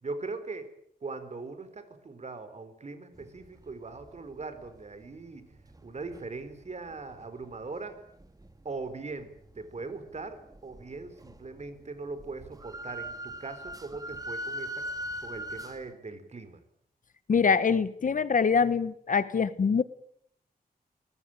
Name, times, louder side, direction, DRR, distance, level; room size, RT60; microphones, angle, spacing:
voice 1, 0.0-0.7 1.0-5.5 5.8-8.0 8.6-14.9 15.2-16.6, right 3 dB, 45° right, 10 dB, 4.0 m, -40 dB
sound 1, 3.1-6.4 6.9-7.7 8.1-11.9 12.1-15.9, equal, 25° right, 2.8 m, -41 dB
voice 2, 17.3-19.8, left 5 dB, 55° left, 15 dB, 1.2 m, -24 dB
24.0 x 20.0 x 9.0 m, 0.70 s
wide cardioid pair, 140°, 16 cm